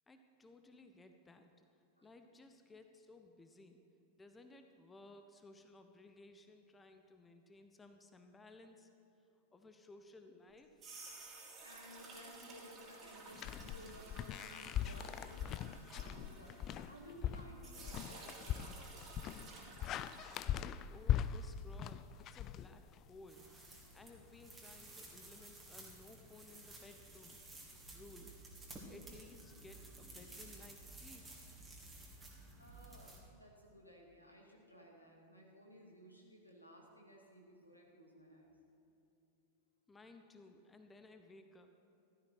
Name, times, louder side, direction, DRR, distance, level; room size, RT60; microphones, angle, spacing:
voice 1, 0.1-1.5 2.0-3.8 4.2-8.9 9.5-10.8 20.9-23.6 23.9-27.4 27.9-28.4 28.7-31.2 39.9-41.7, left 2 dB, 15° left, 6 dB, 0.9 m, -58 dB
sound 1, 10.6-17.3 17.6-20.6, right 3 dB, 25° right, 2.9 m, -54 dB
voice 2, 11.6-19.2 19.7-19.8 32.6-38.5, equal, 85° left, -1 dB, 2.4 m, -58 dB
sound 2, 13.4-23.2, left 10 dB, 35° left, 0.4 m, -40 dB
sound 3, 23.3-33.2, right 2 dB, 10° right, 2.5 m, -54 dB
15.5 x 12.5 x 4.5 m, 2.8 s
figure-of-eight pair, 90°, 0 cm